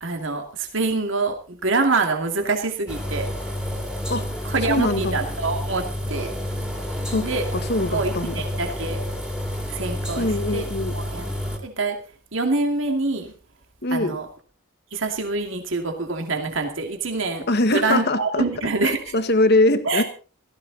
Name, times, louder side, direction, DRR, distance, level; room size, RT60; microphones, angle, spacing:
voice 1, 0.0-3.3 4.4-6.3 7.1-7.5 7.9-9.0 9.7-10.7 10.9-12.0 12.3-13.3 13.9-14.3 14.9-19.1 19.8-20.0, right 3 dB, 60° right, 4 dB, 2.4 m, -25 dB
sound 1, 2.9-11.6, equal, 5° right, 2.7 m, -29 dB
voice 2, 4.7-5.2 7.1-8.4 10.2-10.9 13.8-14.2 17.5-18.4 18.8-20.0, left 2 dB, 50° left, 9 dB, 1.7 m, -22 dB
17.0 x 14.5 x 4.1 m, 0.37 s
head